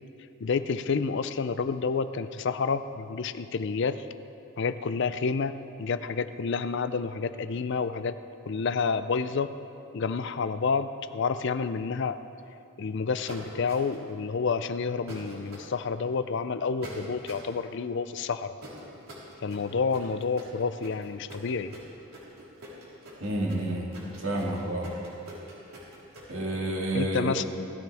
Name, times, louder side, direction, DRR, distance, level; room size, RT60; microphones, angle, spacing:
voice 1, 0.4-4.0 4.6-8.2 8.5-9.5 9.9-12.2 12.8-18.5 19.4-21.7 26.9-27.5, left 5 dB, 55° left, 12 dB, 0.4 m, -29 dB
sound 1, 13.3-14.1 15.1-15.7 16.8-17.5 18.6-26.3, right 1 dB, 85° right, 4.1 m, -44 dB
voice 2, 23.2-23.9 24.2-24.9 26.3-27.3, right 1 dB, 65° right, -2 dB, 2.4 m, -29 dB
19.5 x 14.0 x 3.5 m, 2.7 s
head